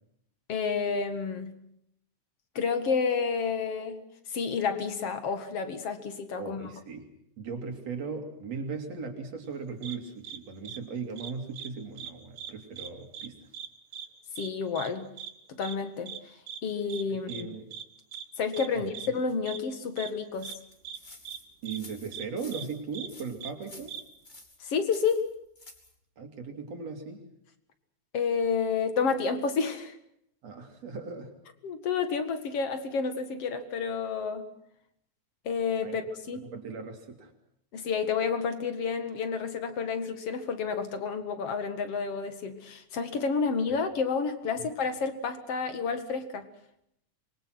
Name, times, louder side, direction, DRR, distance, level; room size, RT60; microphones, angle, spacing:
voice 1, 0.5-1.6 2.6-4.0 4.3-6.7 14.4-15.1 15.5-16.1 16.6-17.5 18.4-20.5 24.6-25.3 28.1-30.0 31.6-34.5 35.4-36.0 36.3-36.5 37.7-46.5, left 5 dB, 50° left, 9 dB, 2.8 m, -30 dB
voice 2, 6.4-7.1 7.4-13.5 17.1-17.7 18.7-18.8 21.6-24.0 26.2-27.2 30.4-31.3 35.8-36.0 36.3-37.3 44.6-44.7, right 5 dB, 55° right, 5 dB, 4.2 m, -38 dB
sound 1, 9.8-10.0 10.2-10.4 10.6-10.8 11.2-11.7 12.0-12.1 12.4-12.9 13.1-13.3 13.5-13.7 13.9-14.1 14.4-14.5 14.8-14.9 15.2-15.3 15.6-15.7 16.1-16.2 16.5-16.6 16.9-17.0 17.3-17.4 17.7-17.8 18.1-18.2 18.5-18.7 18.9-19.1 19.5-19.6 20.0-20.1 20.4-20.6 20.8-21.0 21.2-21.4 21.7-21.8 22.1-22.2 22.5-22.6 22.9-23.1 23.4-23.5 23.9-24.0, right 9 dB, 85° right, 2.9 m, -40 dB
sound 2, 20.3-25.9, left 2 dB, 15° left, 2.7 m, -51 dB
26.0 x 23.5 x 6.1 m, 0.74 s
omnidirectional pair, 3.6 m